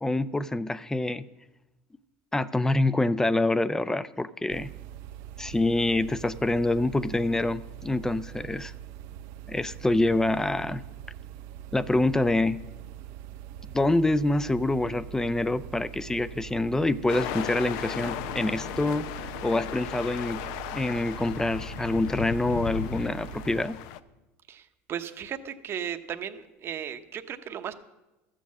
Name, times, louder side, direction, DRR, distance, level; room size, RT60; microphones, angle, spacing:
voice 1, 0.0-1.3 2.3-4.7 5.4-8.7 9.5-10.8 11.7-12.6 13.6-19.0 19.4-20.4 20.7-23.8, left 2 dB, 10° left, 17 dB, 0.4 m, -26 dB
sound 1, 4.5-23.7, right 11 dB, 65° right, 0.7 m, -43 dB
sound 2, 17.1-24.0, left 11 dB, 70° left, 0.6 m, -36 dB
voice 2, 24.5-27.7, right 9 dB, 40° right, 9 dB, 0.9 m, -36 dB
13.5 x 7.6 x 7.5 m, 1.0 s
supercardioid pair, 115°, 6 cm